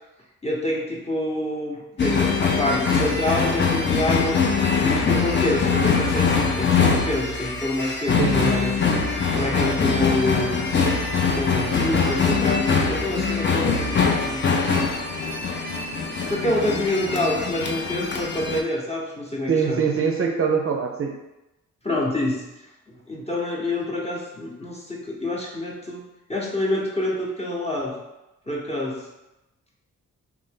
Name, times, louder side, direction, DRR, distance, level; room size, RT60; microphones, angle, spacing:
voice 1, 0.4-4.4 4.7-8.8 9.3-10.6 11.3-14.5 16.3-19.9 21.8-22.5 23.1-26.0 26.3-28.0 28.5-29.1, left 1 dB, 20° left, -3 dB, 0.9 m, -27 dB
sound 1, 2.0-18.6, left 5 dB, 35° left, 0.5 m, -22 dB
voice 2, 8.2-8.5 9.5-9.8 19.5-21.2, right 6 dB, 45° right, 2 dB, 0.5 m, -23 dB
2.9 x 2.5 x 3.7 m, 0.96 s
cardioid pair, 75°, 31 cm